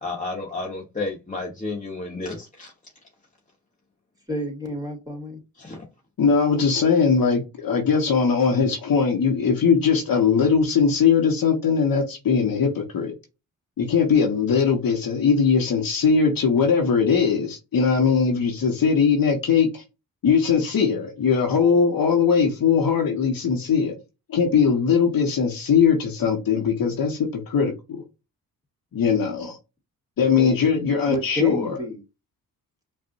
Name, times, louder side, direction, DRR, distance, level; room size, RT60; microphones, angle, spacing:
voice 1, 0.0-2.7 5.6-5.8, left 3 dB, 20° left, 1.3 m, -31 dB
voice 2, 4.3-5.4 30.3-30.5 31.1-32.0, right 1 dB, 10° right, 2.4 m, -30 dB
voice 3, 6.2-13.1 13.8-19.8 20.2-23.9 24.3-28.0 28.9-29.6 30.2-31.8, left 6 dB, 65° left, 1.2 m, -20 dB
5.3 x 2.6 x 2.6 m
supercardioid pair, 60°, 37 cm